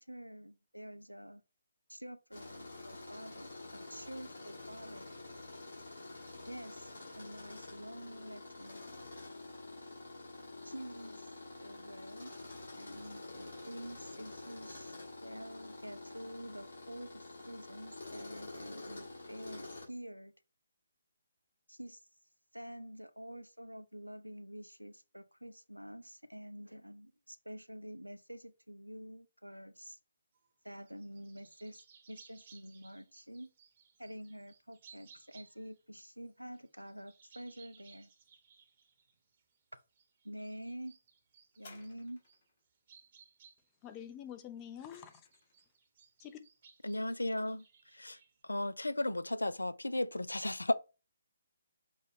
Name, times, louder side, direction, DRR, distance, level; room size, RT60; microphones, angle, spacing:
voice 1, 0.0-1.4 1.9-5.1 6.5-8.8 10.6-11.3 11.6-12.3 12.8-14.9 15.2-20.3 21.7-22.0 22.5-30.0 30.6-33.5 34.0-38.1 40.2-41.0 41.6-42.2, equal, 90° right, 0.5 m, -48 dB
Tools, 2.3-19.8, left 2 dB, 55° left, 2.5 m, -48 dB
sound 1, 30.3-35.8 36.2-44.6 44.9-48.4, right 6 dB, 35° right, 0.8 m, -62 dB
sound 2, 41.5-42.6 44.3-45.7 46.5-46.6, left 3 dB, 40° left, 1.4 m, -59 dB
voice 2, 43.8-45.2 46.2-46.4, left 9 dB, 20° left, 0.5 m, -46 dB
voice 3, 46.8-47.6 47.9-48.2 48.4-50.7, left 1 dB, 75° left, 0.4 m, -34 dB
6.2 x 2.2 x 3.6 m
figure-of-eight pair, 140°, 0 cm